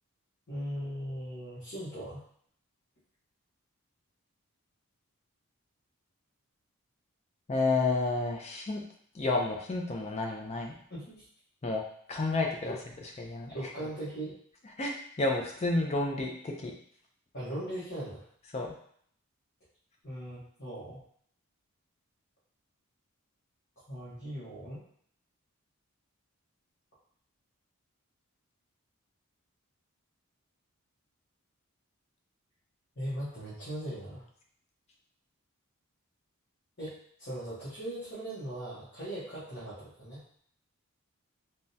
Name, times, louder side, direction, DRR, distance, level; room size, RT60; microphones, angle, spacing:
voice 1, 0.5-2.2 10.9-11.1 12.7-12.8 13.5-14.3 17.3-18.2 20.0-21.0 23.9-24.8 33.0-34.2 36.8-36.9 37.2-40.2, right 1 dB, 45° left, -11 dB, 1.0 m, -39 dB
voice 2, 7.5-8.8 9.1-10.7 11.6-11.8 12.1-12.8 13.2-13.5 14.8-16.7 18.5-18.7, left 3 dB, 30° left, 1 dB, 0.4 m, -30 dB
3.5 x 2.1 x 2.6 m, 0.63 s
head